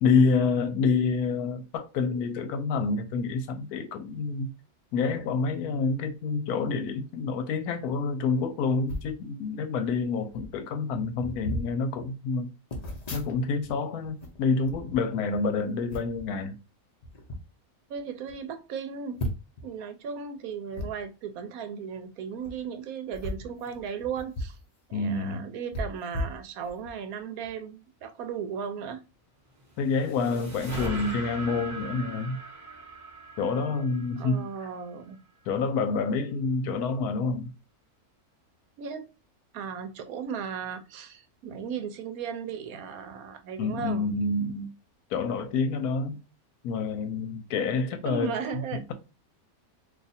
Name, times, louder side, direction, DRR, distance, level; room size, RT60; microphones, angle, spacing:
voice 1, 0.0-4.5 4.9-12.5 13.1-16.6 24.9-25.5 29.8-32.4 33.4-34.5 35.5-37.5 43.6-44.7 45.1-46.2 46.6-48.4 48.7-48.9, left 4 dB, 80° left, 1.1 m, -28 dB
sound 1, 8.8-9.1 10.0-10.1 10.3-10.6 11.1-11.7 12.7-13.7 14.0-15.4 15.9-16.3 17.0-17.4 17.9-18.0 18.3-18.4 19.2-19.6 20.7-20.9 22.3-22.5 23.1-24.6 24.9-25.0 25.7-26.9 27.4-27.6, left 1 dB, 40° left, 0.6 m, -36 dB
voice 2, 17.9-19.2 19.6-24.6 24.9-29.0 34.2-35.2 38.8-39.1 39.5-44.1 48.0-48.9, right 6 dB, 75° right, 1.0 m, -36 dB
sound 2, 29.5-34.9, right 1 dB, 15° right, 1.0 m, -40 dB
2.7 x 2.4 x 4.0 m
omnidirectional pair, 1.6 m